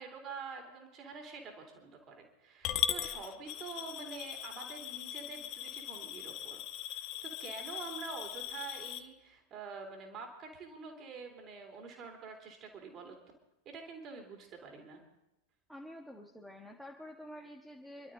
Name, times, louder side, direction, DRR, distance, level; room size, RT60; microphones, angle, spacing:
voice 1, 0.0-6.6 6.9-13.2 13.6-15.0, right 4 dB, 30° right, 3 dB, 3.2 m, -47 dB
Coin (dropping) / Glass, 2.6-9.0, left 11 dB, 40° left, 1.1 m, -39 dB
voice 2, 15.7-18.1, equal, ahead, 1 dB, 1.3 m, -49 dB
28.0 x 12.0 x 3.8 m, 0.92 s
figure-of-eight pair, 90°, 0 cm